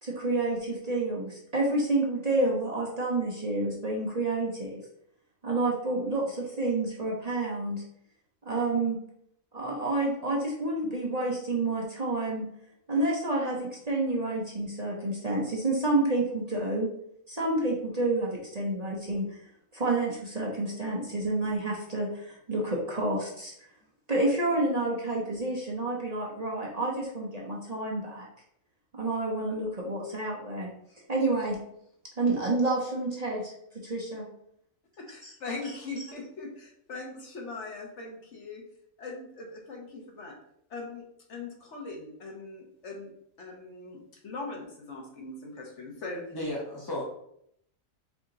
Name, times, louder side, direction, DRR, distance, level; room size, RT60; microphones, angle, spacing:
voice 1, 0.0-4.8 5.4-7.8 8.4-9.0 9.5-12.5 12.9-16.9 17.3-19.3 19.7-23.5 24.1-28.3 28.9-30.7 31.1-31.6 32.2-33.5 33.8-34.3 35.2-35.3, right 2 dB, 35° right, -3 dB, 0.8 m, -29 dB
voice 2, 35.0-38.6 39.0-40.4 40.7-43.1 43.4-46.2, left 3 dB, 60° left, 0 dB, 1.2 m, -40 dB
voice 3, 46.3-47.0, left 1 dB, 25° left, -3 dB, 0.6 m, -33 dB
4.7 x 2.8 x 3.8 m, 0.72 s
omnidirectional pair, 1.4 m